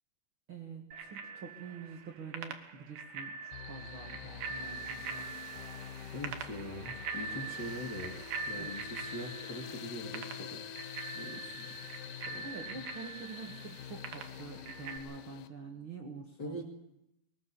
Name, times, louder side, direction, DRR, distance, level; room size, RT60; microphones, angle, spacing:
voice 1, 0.5-5.4 8.6-8.7 12.4-16.6, right 4 dB, 45° right, 2 dB, 2.0 m, -46 dB
Bicycle bell, 0.9-15.0, right 5 dB, 75° right, 3.4 m, -43 dB
sound 1, 3.5-15.5, left 10 dB, 70° left, 2.1 m, -47 dB
voice 2, 6.1-10.6 11.1-11.8 12.1-12.7 16.4-16.6, left 1 dB, 30° left, 1 dB, 2.3 m, -43 dB
Wind instrument woodwind instrument, 7.9-12.9, left 6 dB, 85° left, 1.3 m, -52 dB
21.5 x 20.0 x 7.0 m, 0.84 s
omnidirectional pair, 4.5 m